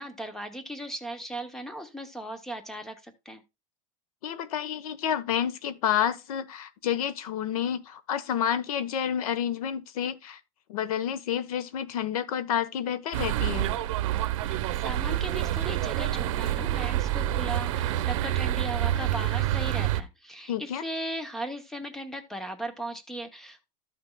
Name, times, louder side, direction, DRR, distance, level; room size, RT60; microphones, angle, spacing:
voice 1, 0.0-3.4 14.5-23.6, right 1 dB, ahead, 0.8 m, -37 dB
voice 2, 4.2-10.4 10.7-13.7 20.5-20.8, left 9 dB, 85° left, 1.1 m, -29 dB
sound 1, 13.1-20.0, right 13 dB, 60° right, 0.8 m, -27 dB
14.0 x 5.9 x 2.3 m
supercardioid pair, 170°, 18 cm